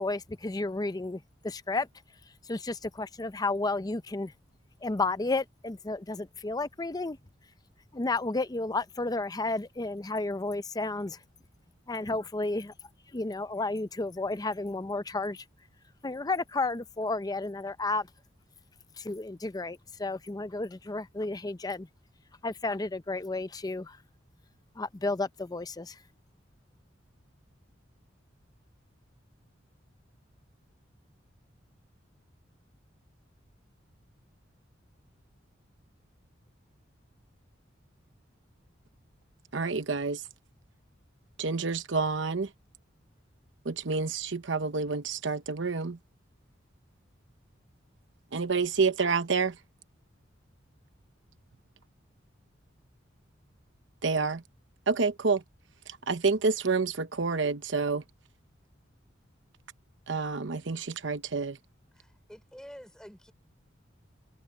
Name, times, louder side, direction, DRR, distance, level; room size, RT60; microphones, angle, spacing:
voice 1, 0.0-1.9 2.4-4.3 4.8-7.2 7.9-11.2 11.9-12.7 13.1-15.4 16.0-18.1 19.0-21.9 22.4-24.0 24.8-26.0, left 2 dB, 20° left, 0.6 m, -32 dB
voice 2, 39.5-40.2 41.4-42.5 43.6-46.0 48.3-49.6 54.0-54.4 54.9-55.4 55.9-58.0 60.1-61.6, right 4 dB, 70° right, 1.0 m, -28 dB
voice 3, 61.9-63.3, equal, 5° left, 4.1 m, -48 dB
head